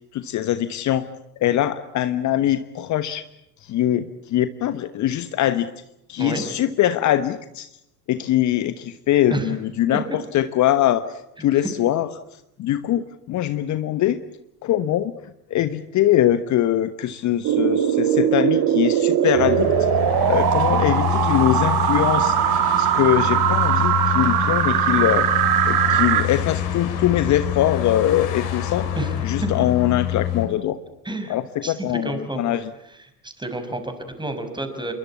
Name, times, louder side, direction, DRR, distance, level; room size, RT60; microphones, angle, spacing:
voice 1, 0.1-1.1 1.4-3.2 3.6-5.7 6.1-7.7 8.1-12.1 12.6-14.2 14.6-15.1 15.5-19.7 20.0-28.9 29.2-30.8 31.3-32.7, left 12 dB, 35° left, 12 dB, 1.2 m, -22 dB
sound 1, 17.4-26.2, right 10 dB, 45° right, 3.0 m, -20 dB
sound 2, 19.3-30.5, left 10 dB, 55° left, 6.7 m, -26 dB
voice 2, 31.6-32.4 33.2-34.9, right 2 dB, 10° right, 8 dB, 5.9 m, -29 dB
28.5 x 23.0 x 8.5 m, 0.85 s
figure-of-eight pair, 75°, 47 cm